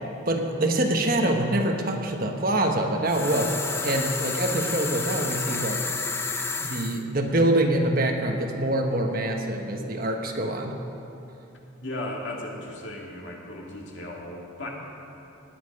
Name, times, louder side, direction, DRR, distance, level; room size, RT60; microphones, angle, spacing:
voice 1, 0.3-3.5 3.8-5.8 6.6-10.8, right 1 dB, 45° right, 3 dB, 1.2 m, -25 dB
sound 1, 3.1-7.0, left 4 dB, 10° left, 0.6 m, -30 dB
voice 2, 11.8-14.7, left 1 dB, 65° left, -1 dB, 2.3 m, -36 dB
19.5 x 9.8 x 5.3 m, 2.8 s
head